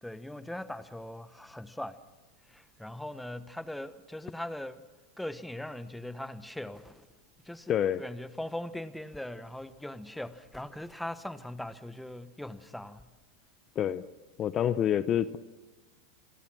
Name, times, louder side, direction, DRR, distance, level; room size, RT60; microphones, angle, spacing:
voice 1, 0.0-2.0 2.5-4.8 5.2-7.1 7.4-13.1, left 1 dB, 5° left, 1.1 m, -40 dB
voice 2, 7.7-8.0 13.8-14.0 14.4-15.4, left 10 dB, 35° left, 0.8 m, -27 dB
27.5 x 21.5 x 6.1 m
hypercardioid pair, 105°, 0 cm